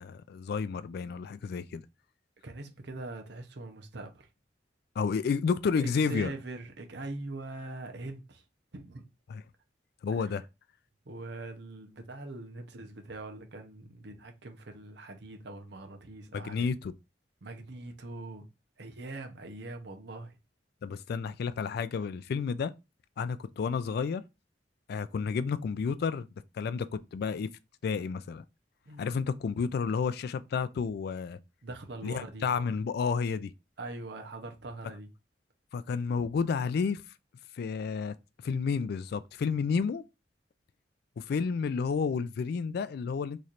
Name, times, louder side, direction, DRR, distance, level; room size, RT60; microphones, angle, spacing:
voice 1, 0.0-1.8 5.0-6.3 9.3-9.4 10.0-10.5 16.3-16.9 20.8-22.7 23.2-24.2 24.9-26.3 26.5-27.5 27.8-28.4 29.0-31.4 32.0-33.5 35.7-37.0 37.5-38.1 38.4-40.0 41.2-43.4, left 5 dB, 60° left, 0.3 m, -31 dB
voice 2, 2.4-4.3 5.8-8.4 8.7-9.1 10.2-10.3 11.1-16.7 17.4-18.5 18.8-20.4 28.9-29.1 31.6-32.5 33.8-35.1, right 2 dB, 65° right, 0.8 m, -42 dB
4.1 x 3.1 x 2.5 m
head